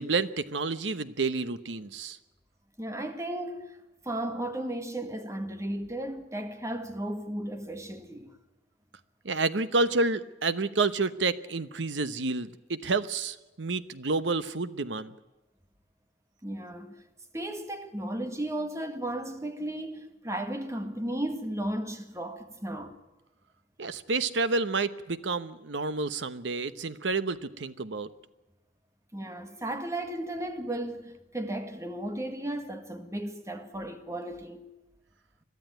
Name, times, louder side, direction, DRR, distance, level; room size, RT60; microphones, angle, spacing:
voice 1, 0.0-2.2 9.2-15.1 23.8-28.1, right 3 dB, 75° right, 1.0 m, -29 dB
voice 2, 2.8-3.8 4.0-8.3 16.4-17.0 17.3-22.9 29.1-34.7, right 1 dB, 15° right, 1.8 m, -35 dB
22.0 x 13.0 x 9.2 m
head